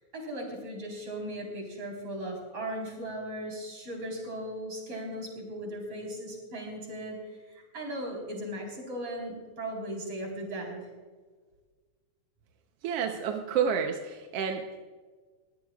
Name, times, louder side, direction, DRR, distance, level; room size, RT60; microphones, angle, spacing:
voice 1, 0.0-10.9, right 1 dB, 45° right, 0 dB, 4.9 m, -37 dB
voice 2, 12.8-14.8, right 7 dB, 65° right, 4 dB, 1.7 m, -30 dB
21.5 x 17.0 x 2.4 m, 1.4 s
omnidirectional pair, 3.4 m